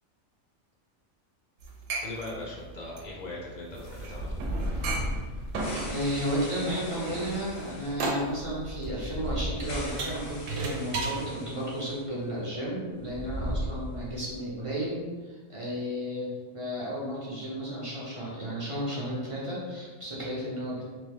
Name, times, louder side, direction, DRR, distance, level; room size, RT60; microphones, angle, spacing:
sound 1, 1.6-11.2, right 3 dB, 75° right, 0.9 m, -34 dB
voice 1, 2.0-4.4, left 2 dB, 50° left, -4 dB, 0.5 m, -39 dB
sound 2, 3.8-12.0 12.3-12.4 13.0-14.4, equal, 75° left, 1.0 m, -36 dB
voice 2, 5.8-20.8, equal, 40° right, -6 dB, 0.5 m, -33 dB
3.0 x 2.2 x 3.2 m, 1.4 s
omnidirectional pair, 1.4 m